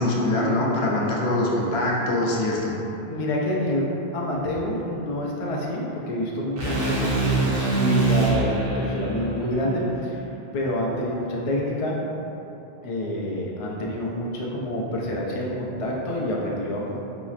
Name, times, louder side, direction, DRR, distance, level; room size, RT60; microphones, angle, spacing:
voice 1, 0.0-2.7, left 1 dB, 75° left, -4 dB, 0.9 m, -23 dB
voice 2, 3.1-10.2 10.5-12.0 12.8-17.0, left 1 dB, 45° left, -3 dB, 0.4 m, -27 dB
sound 1, 6.6-10.7, right 3 dB, 65° right, 0.9 m, -25 dB
4.0 x 2.9 x 2.4 m, 2.9 s
omnidirectional pair, 1.1 m